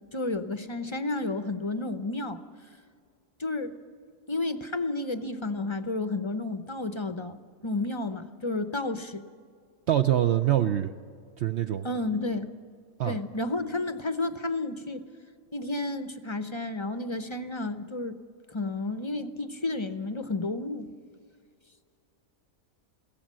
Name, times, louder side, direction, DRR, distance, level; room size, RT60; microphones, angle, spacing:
voice 1, 0.1-2.4 3.4-3.8 4.3-9.2 11.8-12.5 13.0-15.1 15.5-18.2 18.5-20.9, left 2 dB, 25° left, 10 dB, 0.7 m, -31 dB
voice 2, 9.9-10.9 11.4-11.9 13.0-13.2, right 11 dB, 60° right, 7 dB, 0.9 m, -24 dB
22.5 x 16.5 x 7.5 m, 2.3 s
omnidirectional pair, 1.4 m